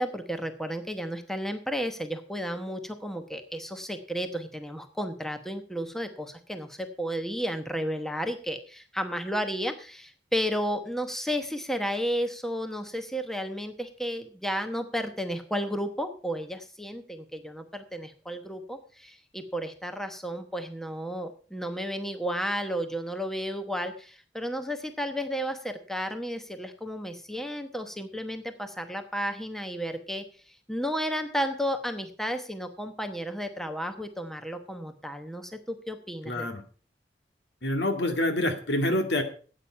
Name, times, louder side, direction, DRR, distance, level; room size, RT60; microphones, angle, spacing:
voice 1, 0.0-36.5, equal, ahead, 7 dB, 1.0 m, -33 dB
voice 2, 36.3-36.6 37.6-39.2, left 1 dB, 70° left, 6 dB, 2.1 m, -26 dB
13.0 x 8.8 x 5.6 m, 0.40 s
head